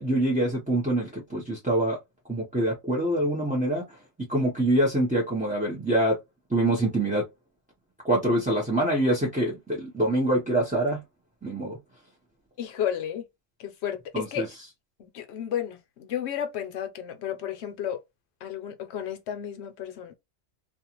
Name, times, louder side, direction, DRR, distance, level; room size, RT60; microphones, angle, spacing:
voice 1, 0.0-2.0 2.3-3.8 4.3-6.2 6.5-7.2 8.0-11.0 11.4-11.8 14.1-14.5, right 1 dB, 10° right, 0.6 m, -25 dB
voice 2, 12.6-13.2 13.6-14.5 15.0-18.0 18.4-20.1, left 9 dB, 65° left, 0.9 m, -32 dB
2.4 x 2.4 x 2.9 m
omnidirectional pair, 1.3 m